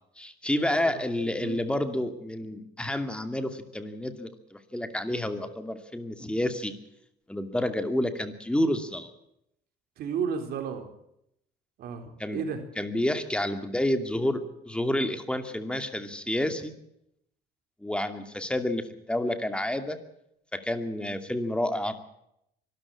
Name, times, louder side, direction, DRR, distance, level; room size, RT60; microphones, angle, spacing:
voice 1, 0.2-6.7 7.3-9.1 12.2-12.4 12.8-16.7 17.8-20.0 20.5-21.9, left 1 dB, 5° left, 8 dB, 2.5 m, -29 dB
voice 2, 10.0-10.9 11.8-12.6, right 6 dB, 70° right, 6 dB, 3.9 m, -32 dB
24.0 x 13.5 x 8.7 m, 0.77 s
cardioid pair, 110°, 17 cm